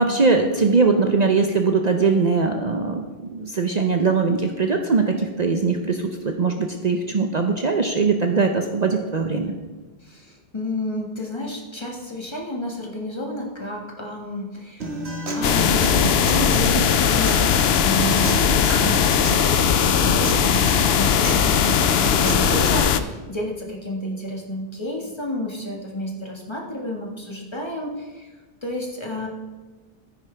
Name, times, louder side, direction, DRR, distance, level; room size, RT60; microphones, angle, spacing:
voice 1, 0.0-3.0 3.3-9.5, right 4 dB, 45° right, 4 dB, 0.8 m, -21 dB
voice 2, 10.0-15.0 15.3-29.3, left 1 dB, 25° left, -1 dB, 1.7 m, -31 dB
Acoustic guitar, 14.8-22.8, right 2 dB, 85° right, 1.9 m, -30 dB
sound 1, 15.4-23.0, left 8 dB, 75° left, 0.8 m, -19 dB
13.0 x 9.8 x 3.4 m, 1.2 s
omnidirectional pair, 1.1 m